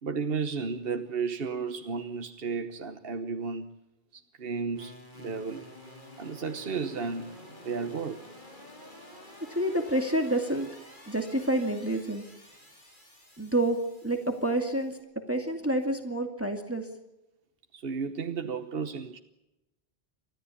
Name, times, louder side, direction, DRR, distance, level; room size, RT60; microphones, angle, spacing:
voice 1, 0.0-3.7 4.1-5.7 6.2-8.2 17.7-19.2, right 5 dB, 65° right, 1.3 m, -33 dB
sound 1, 4.7-15.0, left 1 dB, 50° left, 5.3 m, -50 dB
voice 2, 9.5-10.7 11.1-12.2 13.4-16.9, right 1 dB, 15° right, 2.4 m, -28 dB
30.0 x 14.0 x 8.5 m
omnidirectional pair, 1.1 m